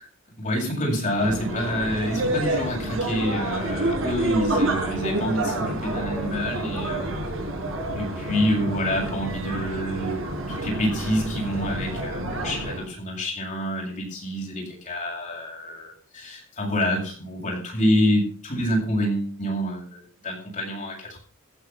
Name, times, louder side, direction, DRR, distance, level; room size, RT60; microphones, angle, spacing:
voice 1, 0.4-7.1 7.9-10.2 10.5-21.2, equal, 35° left, -1 dB, 7.8 m, -27 dB
sound 1, 1.1-12.9, right 1 dB, 75° right, 5.9 m, -28 dB
15.0 x 9.4 x 6.2 m, 0.42 s
head